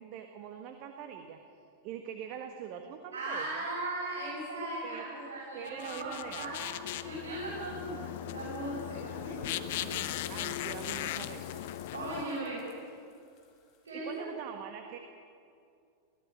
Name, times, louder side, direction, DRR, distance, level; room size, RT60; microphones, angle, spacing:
voice 1, 0.0-1.4 1.8-3.5 4.8-5.0 5.5-6.5 10.3-11.6 12.4-12.5 13.9-15.0, right 8 dB, 45° right, 5 dB, 1.6 m, -43 dB
voice 2, 3.1-6.5 7.0-10.0 11.9-12.6 13.8-14.2, right 2 dB, 65° right, -7 dB, 7.7 m, -38 dB
sound 1, 5.7-12.3, left 13 dB, 55° left, 0.9 m, -38 dB
sound 2, 9.1-13.9, left 8 dB, 40° left, 3.9 m, -55 dB
23.0 x 16.0 x 8.9 m, 2.4 s
figure-of-eight pair, 90°, 0 cm